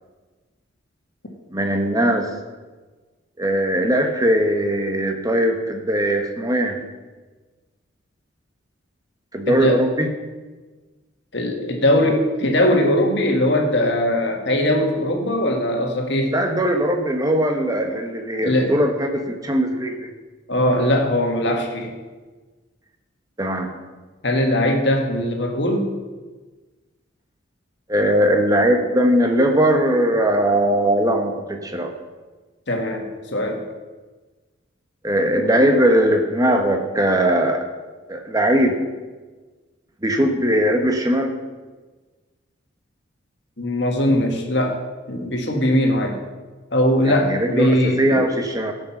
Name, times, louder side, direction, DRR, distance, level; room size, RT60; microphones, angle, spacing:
voice 1, 1.5-2.3 3.4-6.8 9.3-10.1 16.3-20.1 23.4-23.7 27.9-31.9 35.0-37.6 38.1-38.8 40.0-41.3 47.1-48.7, right 1 dB, 20° right, 4 dB, 1.1 m, -20 dB
voice 2, 9.5-9.8 11.3-16.3 18.4-18.8 20.5-21.9 24.2-25.9 32.7-33.6 43.6-44.8 45.1-46.2 46.7-48.2, left 1 dB, 60° left, 2 dB, 1.7 m, -20 dB
15.0 x 6.4 x 6.0 m, 1.3 s
head